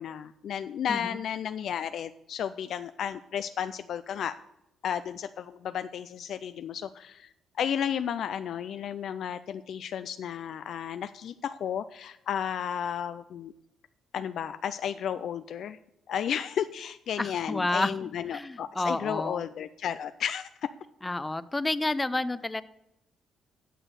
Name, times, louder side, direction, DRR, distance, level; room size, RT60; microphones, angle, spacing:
voice 1, 0.0-4.3 4.8-7.3 7.6-13.5 14.1-15.8 16.1-20.5, left 9 dB, 70° left, 11 dB, 0.3 m, -33 dB
voice 2, 0.9-1.2 17.2-19.4 21.0-22.6, left 2 dB, 15° left, 15 dB, 0.5 m, -30 dB
9.0 x 6.2 x 6.5 m, 0.86 s
cardioid pair, 90°, 0 cm